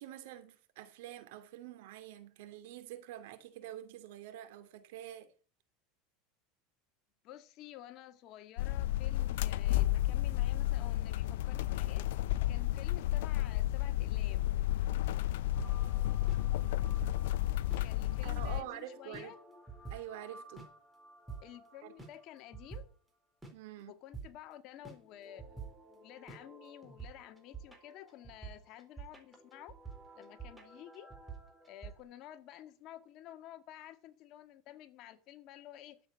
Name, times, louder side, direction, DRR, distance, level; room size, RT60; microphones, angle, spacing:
voice 1, 0.0-5.3 17.7-17.9 18.2-19.3 19.9-20.7 21.8-21.9 23.5-23.9, right 12 dB, 75° right, 2.7 m, -47 dB
voice 2, 7.2-14.6 17.8-19.4 21.4-22.9 23.8-25.5 25.9-29.7 30.2-31.1 31.6-36.0, left 12 dB, 50° left, 1.8 m, -52 dB
sound 1, 8.6-18.6, left 15 dB, 85° left, 0.6 m, -32 dB
sound 2, 15.5-22.8 23.4-23.5 24.1-24.3 24.8-32.0, right 5 dB, 5° right, 4.0 m, -49 dB
12.5 x 7.9 x 8.3 m
supercardioid pair, 130°, 0 cm